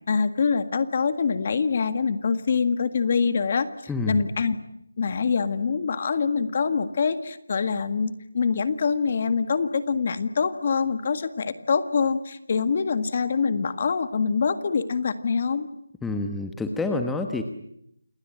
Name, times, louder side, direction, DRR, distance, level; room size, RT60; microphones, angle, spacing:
voice 1, 0.1-3.7 4.1-4.6 5.0-15.7, left 5 dB, 35° left, 11 dB, 1.8 m, -25 dB
voice 2, 3.9-4.2 16.0-17.4, left 3 dB, 5° left, 5 dB, 1.1 m, -28 dB
29.0 x 20.0 x 10.0 m, 0.76 s
figure-of-eight pair, 170°, 0 cm